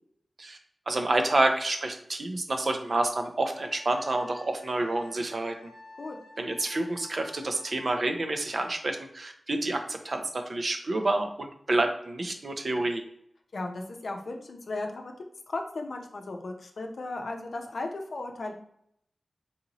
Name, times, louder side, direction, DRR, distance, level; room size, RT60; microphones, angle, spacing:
voice 1, 0.9-5.7 6.4-13.0, right 2 dB, 60° right, 4 dB, 0.5 m, -28 dB
Wind instrument woodwind instrument, 3.5-8.4, left 3 dB, 40° left, 0.9 m, -52 dB
voice 2, 13.5-15.1 15.5-18.5, left 2 dB, 75° left, 3 dB, 0.6 m, -36 dB
4.0 x 2.7 x 2.9 m, 0.71 s
cardioid pair, 55°, 0 cm